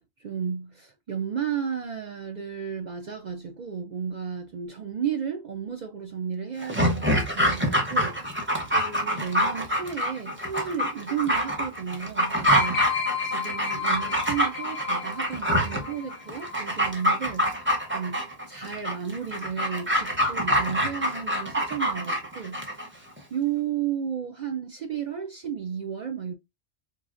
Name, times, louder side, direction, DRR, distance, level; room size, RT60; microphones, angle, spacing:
voice 1, 0.2-8.2 8.7-17.6 17.9-18.2 18.5-22.6 23.3-26.3, right 8 dB, 55° right, 0.5 m, -33 dB
Dog, 6.6-22.9 23.2-23.3, equal, 15° right, 0.6 m, -26 dB
sound 1, 12.5-17.0 17.3-17.6, left 6 dB, 65° left, 0.7 m, -33 dB
4.6 x 2.7 x 2.5 m
omnidirectional pair, 1.2 m